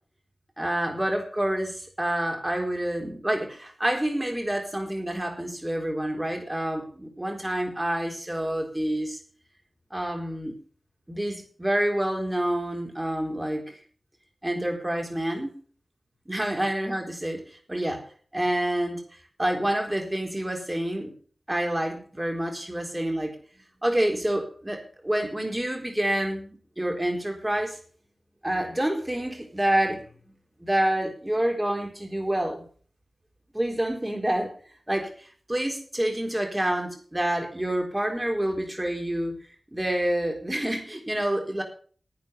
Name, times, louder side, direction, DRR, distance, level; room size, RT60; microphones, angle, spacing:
voice 1, 0.6-9.2 9.9-10.6 11.1-13.8 14.4-15.5 16.3-18.0 18.3-19.0 19.4-21.1 21.5-23.4 23.8-27.8 28.4-30.0 30.6-32.7 33.5-34.5 34.9-39.4 39.7-41.6, right 1 dB, 15° right, 2 dB, 4.0 m, -28 dB
11.0 x 9.1 x 6.9 m, 0.43 s
wide cardioid pair, 70°, 0 cm